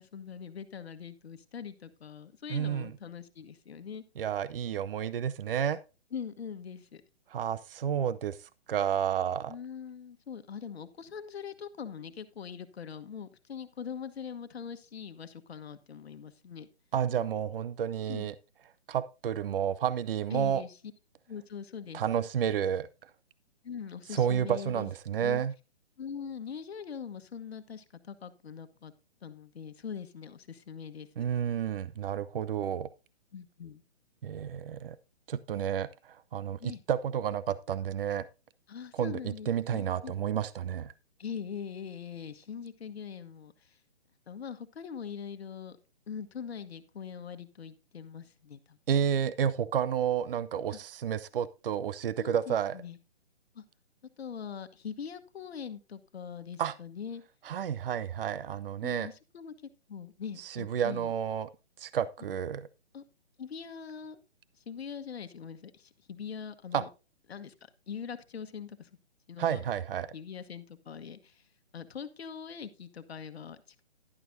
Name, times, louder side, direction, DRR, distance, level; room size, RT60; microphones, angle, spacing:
voice 1, 0.0-4.0 6.1-7.0 9.5-16.7 18.1-18.3 20.3-20.8 21.3-22.2 23.6-24.9 25.2-25.4 26.0-28.9 29.2-31.1 33.3-33.8 36.6-36.8 38.7-40.1 41.2-43.8 44.3-45.8 46.1-48.8 50.7-50.8 52.2-53.0 53.5-53.6 54.2-57.2 58.8-59.5 59.9-61.1 62.9-63.0 63.4-64.2 64.7-66.9 67.3-67.5 67.9-68.9 69.3-69.6 70.1-71.4 71.7-73.8, left 7 dB, 65° left, 10 dB, 1.2 m, -42 dB
voice 2, 2.5-2.9 4.2-5.8 7.3-8.4 8.7-9.6 16.9-18.3 18.9-20.6 21.9-22.9 24.1-25.5 31.2-32.9 34.2-35.0 35.3-38.3 38.9-39.2 39.5-40.9 48.9-52.8 56.6-56.7 57.4-59.1 60.4-61.5 61.8-62.7 66.7-66.8 69.4-70.1, right 8 dB, 55° right, 17 dB, 0.6 m, -31 dB
11.0 x 10.5 x 2.6 m, 0.28 s
hypercardioid pair, 160°, 33 cm